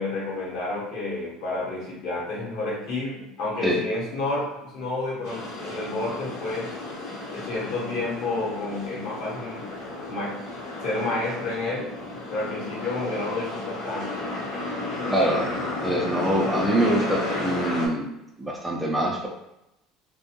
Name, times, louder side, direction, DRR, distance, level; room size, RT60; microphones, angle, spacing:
voice 1, 0.0-6.7 7.3-9.7 10.1-10.4 10.8-11.9 12.3-14.2 14.9-15.2 15.8-16.0, left 2 dB, 65° left, -5 dB, 1.0 m, -30 dB
sound 1, 5.2-17.9, left 2 dB, 85° left, 0.9 m, -33 dB
voice 2, 15.1-18.1 18.4-19.3, right 1 dB, 10° right, -2 dB, 0.4 m, -24 dB
2.6 x 2.1 x 2.8 m, 0.87 s
supercardioid pair, 120°, 0 cm